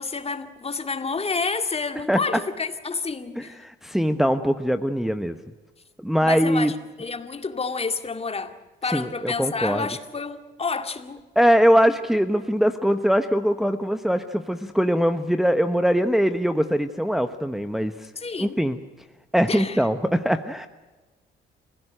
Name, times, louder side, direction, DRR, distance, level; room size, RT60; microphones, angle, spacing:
voice 1, 0.0-3.6 6.2-8.6 8.8-11.2 18.2-18.6 19.5-19.9, left 4 dB, 30° left, 2.3 m, -29 dB
voice 2, 3.4-5.4 6.0-6.7 8.9-9.9 11.4-18.1 18.4-18.8 19.3-20.7, equal, ahead, 1.1 m, -22 dB
29.0 x 16.0 x 9.0 m
cardioid pair, 90°, 20 cm